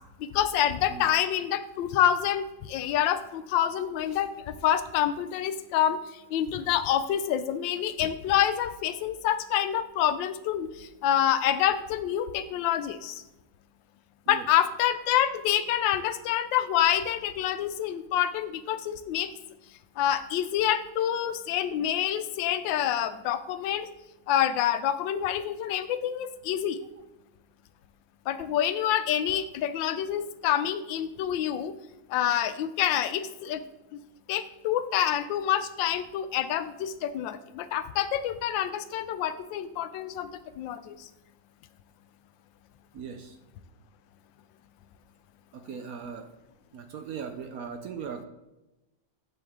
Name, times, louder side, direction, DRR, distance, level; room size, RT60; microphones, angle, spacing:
voice 1, 0.2-13.2 14.3-19.3 20.0-23.9 24.3-26.8 28.3-31.7 32.1-33.6 33.9-34.0 34.3-40.3 40.6-41.1, left 10 dB, 85° left, 13 dB, 1.3 m, -27 dB
voice 2, 42.9-43.4 45.5-46.3 46.7-48.2, right 6 dB, 65° right, 7 dB, 0.9 m, -39 dB
8.0 x 7.8 x 3.6 m, 0.99 s
omnidirectional pair, 2.0 m